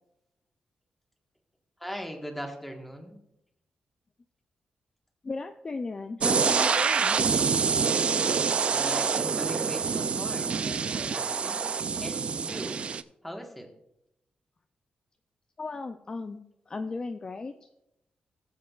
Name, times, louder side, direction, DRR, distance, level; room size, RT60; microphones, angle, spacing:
voice 1, 1.8-3.2 8.7-11.7 12.0-12.8 13.2-13.7, equal, 5° left, 2 dB, 1.4 m, -39 dB
voice 2, 5.2-7.2 15.6-17.8, left 3 dB, 30° left, 7 dB, 0.4 m, -36 dB
sound 1, 6.2-13.0, right 6 dB, 45° right, 0.4 m, -26 dB
19.0 x 7.4 x 2.4 m, 0.84 s
wide cardioid pair, 145°, 3 cm